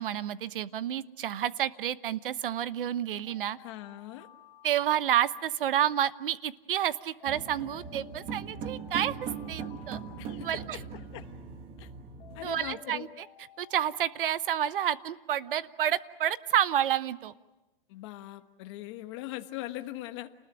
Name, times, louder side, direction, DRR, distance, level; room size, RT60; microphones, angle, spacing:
voice 1, 0.0-3.6 4.6-10.0 10.4-10.8 12.4-13.3 13.6-17.3, right 10 dB, 65° right, 15 dB, 1.0 m, -30 dB
Alarm, 3.2-5.9 7.2-10.9 12.2-15.4, left 9 dB, 50° left, 1.8 m, -55 dB
voice 2, 3.6-4.3 10.2-10.6 11.1-11.3 11.8-11.9 12.3-13.1 17.9-20.3, left 16 dB, 30° left, 8 dB, 1.3 m, -40 dB
sound 1, 7.3-12.7, right 6 dB, 20° right, 1.6 m, -40 dB
29.5 x 20.0 x 9.0 m, 1.1 s
hypercardioid pair, 170°, 29 cm